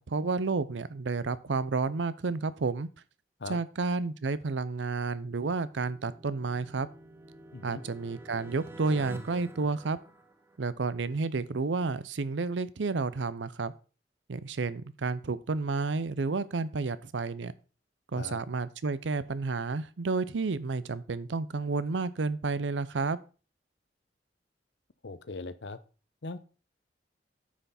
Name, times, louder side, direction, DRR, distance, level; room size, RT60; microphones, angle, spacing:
voice 1, 0.0-2.9 3.5-6.9 7.6-10.0 10.6-13.7 14.3-17.5 18.1-23.2, right 4 dB, 85° right, 16 dB, 0.6 m, -31 dB
sound 1, 5.2-10.9, right 1 dB, 15° right, 0.7 m, -48 dB
voice 2, 25.0-25.8 26.2-26.4, left 3 dB, 75° left, 13 dB, 0.8 m, -39 dB
9.4 x 5.8 x 4.2 m, 0.36 s
head